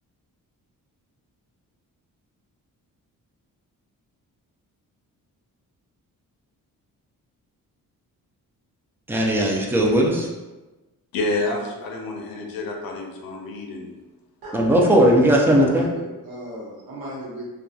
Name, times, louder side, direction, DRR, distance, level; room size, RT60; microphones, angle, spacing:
voice 1, 9.1-10.3 14.5-15.9, equal, 5° right, -1 dB, 0.4 m, -18 dB
voice 2, 11.1-13.9 14.7-15.0, left 2 dB, 75° left, 2 dB, 0.6 m, -29 dB
voice 3, 15.2-17.5, equal, 80° right, -5 dB, 1.0 m, -36 dB
2.8 x 2.3 x 2.3 m, 1.1 s
cardioid pair, 90°, 35 cm